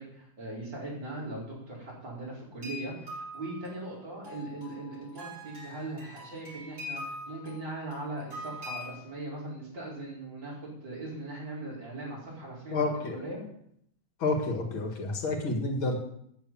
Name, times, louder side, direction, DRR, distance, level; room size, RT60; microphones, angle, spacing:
voice 1, 0.0-13.4, right 2 dB, 65° right, -5 dB, 5.5 m, -40 dB
sound 1, 2.6-9.1, left 1 dB, 35° right, 7.0 m, -43 dB
voice 2, 12.7-13.2 14.2-16.0, left 2 dB, 90° left, 2 dB, 2.8 m, -29 dB
9.5 x 7.2 x 8.9 m, 0.70 s
omnidirectional pair, 2.2 m